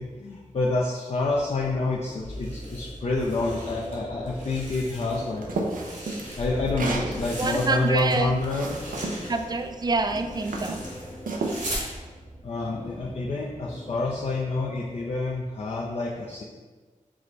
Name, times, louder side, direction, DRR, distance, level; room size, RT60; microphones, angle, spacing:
voice 1, 0.0-5.5 6.4-8.8 12.4-16.4, left 2 dB, 50° left, -3 dB, 0.5 m, -28 dB
sound 1, 1.2-15.2, left 1 dB, 30° left, 1.1 m, -40 dB
sound 2, 2.3-4.0 4.3-5.3 5.6-8.1 8.4-11.9, right 1 dB, 70° right, 1.2 m, -40 dB
sound 3, 5.0-7.1 7.7-9.2 9.9-10.1 10.5-11.6, right 3 dB, 85° right, 0.5 m, -32 dB
voice 2, 7.4-8.3 9.3-10.8, right 3 dB, 30° right, 7 dB, 0.3 m, -26 dB
4.7 x 2.2 x 3.8 m, 1.4 s
cardioid pair, 60°, 14 cm